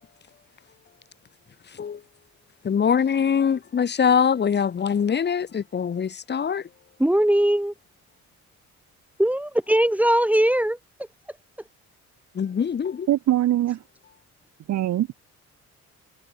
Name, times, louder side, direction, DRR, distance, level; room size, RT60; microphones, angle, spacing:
voice 1, 2.6-6.6 12.4-13.1, left 7 dB, 35° left, 0.9 m, -23 dB
voice 2, 7.0-7.7 9.2-10.8, right 1 dB, 5° right, 2.5 m, -20 dB
voice 3, 13.1-13.8 14.7-15.2, right 13 dB, 65° right, 0.9 m, -22 dB
cardioid pair, 90°, 30 cm